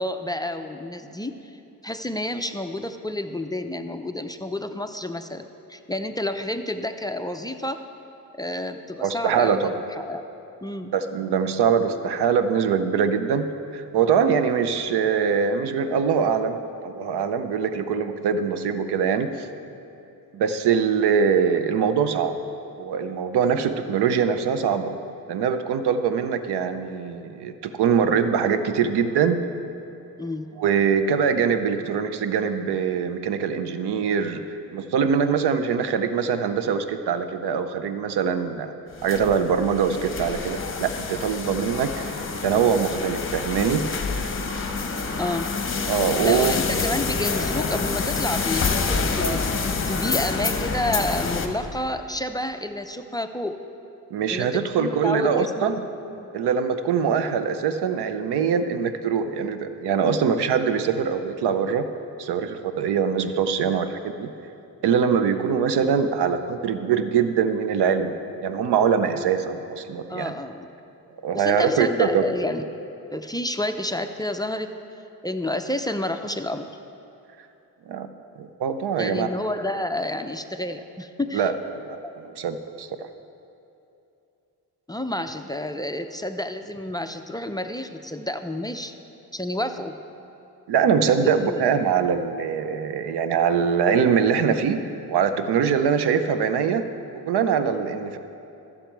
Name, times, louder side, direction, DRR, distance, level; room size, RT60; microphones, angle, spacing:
voice 1, 0.0-1.5 1.8-7.8 8.3-10.2 10.6-10.9 30.2-30.5 45.2-45.5 46.2-53.6 54.3-56.3 70.1-70.7 71.3-72.6 73.1-74.7 75.2-76.7 79.0-81.5 82.0-82.1 84.9-88.9 89.3-90.0 91.2-91.6, left 1 dB, 10° left, 7 dB, 0.4 m, -30 dB
voice 2, 9.0-9.7 10.9-16.6 16.8-19.5 20.3-22.4 22.8-24.9 25.3-29.4 30.6-34.4 34.7-38.7 39.0-44.3 45.9-46.5 54.1-55.8 56.3-61.9 62.2-64.3 64.8-70.3 71.2-72.2 77.9-78.1 78.4-79.3 81.3-83.1 90.7-94.8 95.1-96.9 97.1-98.2, right 6 dB, 90° right, 10 dB, 0.7 m, -23 dB
sound 1, 38.9-51.5, left 4 dB, 35° left, 0.9 m, -27 dB
sound 2, 41.7-51.9, right 1 dB, 70° right, 2.8 m, -46 dB
sound 3, 46.6-51.8, left 1 dB, 5° right, 0.8 m, -39 dB
13.5 x 7.4 x 4.5 m, 2.8 s
cardioid pair, 90°, 38 cm